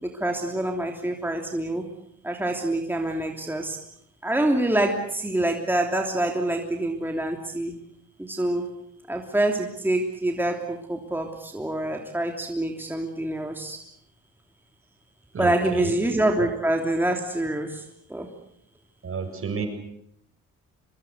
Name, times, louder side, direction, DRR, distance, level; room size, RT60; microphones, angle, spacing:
voice 1, 0.0-1.8 2.2-3.8 4.2-7.8 8.2-8.6 9.1-13.8 15.4-17.8 18.1-18.3, right 1 dB, 5° right, 3 dB, 3.2 m, -26 dB
voice 2, 15.3-15.9 16.4-16.5 19.0-19.7, right 5 dB, 45° right, 6 dB, 7.2 m, -31 dB
24.5 x 23.0 x 8.2 m, 0.72 s
cardioid pair, 90°, 30 cm